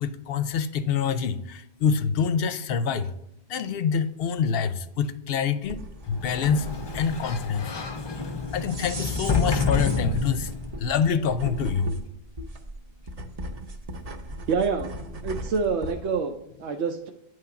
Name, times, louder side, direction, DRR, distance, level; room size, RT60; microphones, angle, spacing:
voice 1, 0.0-3.1 3.5-5.8 6.1-6.7 6.9-7.6 8.5-10.5 10.8-12.0, left 6 dB, 65° left, 11 dB, 0.7 m, -26 dB
sound 1, 5.6-16.0, right 1 dB, 40° right, 0.7 m, -38 dB
Sliding door, 6.1-10.8, left 4 dB, 40° left, 0.4 m, -29 dB
voice 2, 14.5-14.9 15.2-17.1, right 5 dB, 85° right, 4 dB, 0.9 m, -27 dB
9.4 x 3.2 x 5.7 m, 0.78 s
omnidirectional pair, 1.1 m